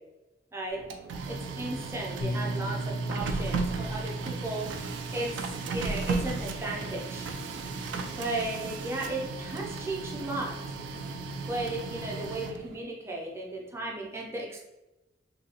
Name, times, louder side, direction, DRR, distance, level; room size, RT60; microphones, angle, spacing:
Printer, 0.7-12.8, right 4 dB, 75° right, 0.4 m, -35 dB
voice 1, 1.3-5.3 5.7-7.3 8.1-10.8 11.5-14.6, right 2 dB, 15° right, -2 dB, 0.6 m, -35 dB
Bass guitar, 2.2-8.5, right 1 dB, 80° left, 0.4 m, -38 dB
2.8 x 2.7 x 2.8 m, 1.0 s
head